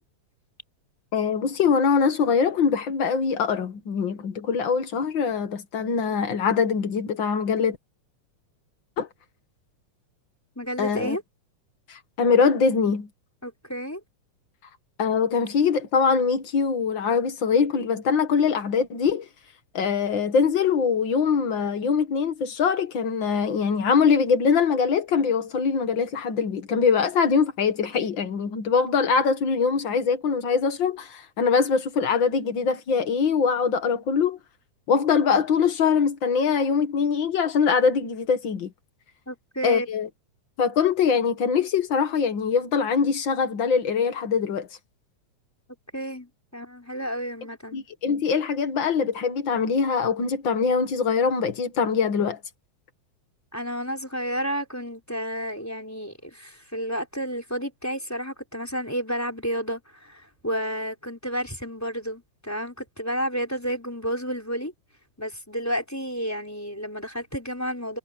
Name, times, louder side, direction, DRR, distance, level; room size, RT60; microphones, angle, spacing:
voice 1, 1.1-7.8 9.0-9.1 10.8-11.2 11.9-13.1 15.0-19.3 19.7-34.4 34.9-38.7 39.6-40.1 40.6-44.7 47.7-52.4, left 6 dB, 45° left, 2.0 m, -23 dB
voice 2, 10.6-11.2 13.4-14.0 39.3-39.9 45.9-47.8 53.5-64.7 65.2-68.0, equal, 5° left, 4.3 m, -31 dB
omnidirectional pair, 3.3 m